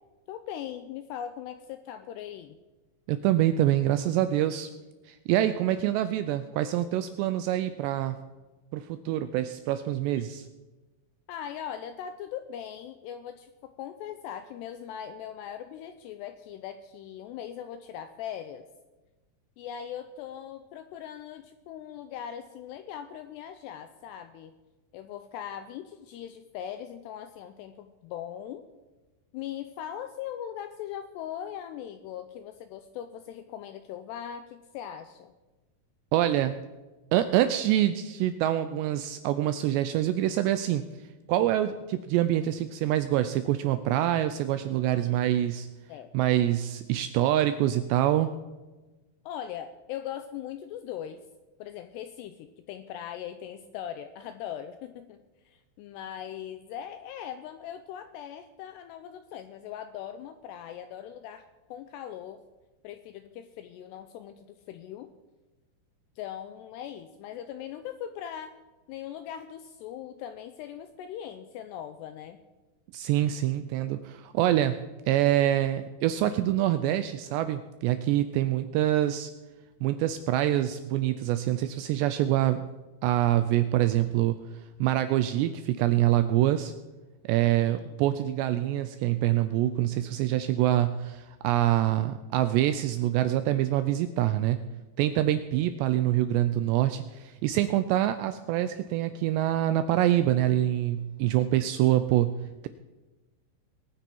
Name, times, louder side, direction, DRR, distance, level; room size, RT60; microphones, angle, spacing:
voice 1, 0.3-2.6 11.3-18.6 19.6-24.5 24.9-28.7 29.3-35.3 45.0-45.2 45.9-46.1 49.3-51.2 51.6-55.2 55.5-62.4 62.8-65.1 66.2-68.5 68.9-72.4 84.0-84.2 87.7-88.1, left 10 dB, 85° left, 9 dB, 2.4 m, -40 dB
voice 2, 3.1-4.7 5.1-8.2 8.7-10.5 36.1-36.6 37.1-40.8 41.3-45.7 46.1-48.3 72.9-74.8 75.1-79.3 79.8-82.6 83.0-84.4 84.8-86.7 87.2-94.6 95.0-102.3, right 13 dB, 85° right, 11 dB, 2.5 m, -25 dB
21.5 x 9.3 x 4.6 m, 1.2 s
omnidirectional pair, 5.5 m